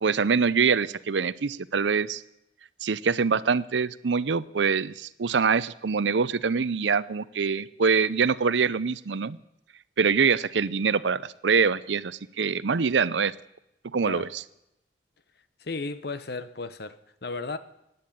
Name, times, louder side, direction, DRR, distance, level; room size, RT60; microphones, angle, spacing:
voice 1, 0.0-2.2 2.8-9.4 10.0-13.3 13.9-14.4, right 5 dB, 85° right, 18 dB, 0.6 m, -24 dB
voice 2, 15.6-17.0 17.2-17.6, left 3 dB, 60° left, 13 dB, 1.0 m, -34 dB
16.0 x 9.6 x 8.8 m, 0.83 s
head